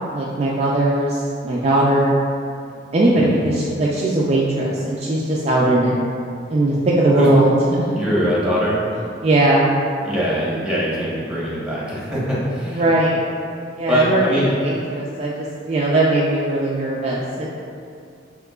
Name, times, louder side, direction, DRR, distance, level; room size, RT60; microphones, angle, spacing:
voice 1, 0.1-2.1 2.9-6.0 6.5-7.5 7.8-7.9 9.2-9.7 12.7-13.2 13.8-17.5, right 1 dB, 35° right, -5 dB, 0.4 m, -19 dB
voice 2, 3.1-3.5 7.1-7.3 7.9-8.8 10.0-12.9 13.9-14.5, equal, 5° right, -8 dB, 1.1 m, -22 dB
7.2 x 3.1 x 2.3 m, 2.4 s
head